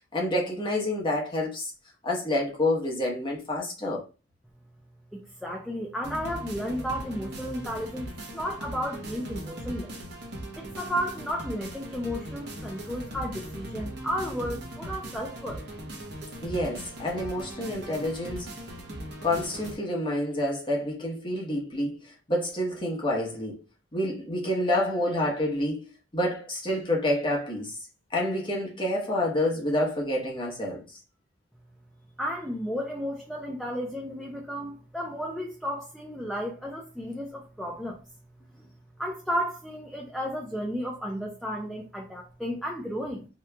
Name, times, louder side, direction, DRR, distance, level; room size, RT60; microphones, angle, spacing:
voice 1, 0.1-1.7 2.0-4.0 16.4-18.5 19.2-23.6 23.9-25.9 26.1-27.8 28.1-30.8, left 1 dB, 25° left, 0.9 m, -28 dB
voice 2, 5.1-10.0 10.6-15.6 32.2-38.0 38.6-38.7 39.0-43.3, equal, ahead, 0.4 m, -33 dB
sound 1, 6.0-19.7, right 1 dB, 60° right, 0.8 m, -39 dB
2.9 x 2.3 x 3.3 m
head